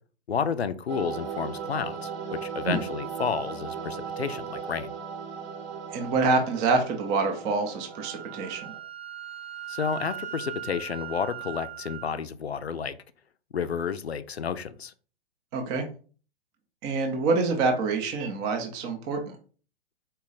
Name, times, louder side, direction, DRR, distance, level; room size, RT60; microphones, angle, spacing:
voice 1, 0.3-4.9 9.7-13.0 13.5-14.9, left 6 dB, 85° left, 0.5 m, -31 dB
sound 1, 0.9-8.8, right 6 dB, 30° right, 0.7 m, -37 dB
voice 2, 5.9-8.7 15.5-15.9 16.8-19.4, right 4 dB, 15° right, 0.4 m, -26 dB
Wind instrument woodwind instrument, 7.9-12.1, right 12 dB, 80° right, 0.6 m, -39 dB
4.0 x 2.3 x 3.8 m
figure-of-eight pair, 110°, 31 cm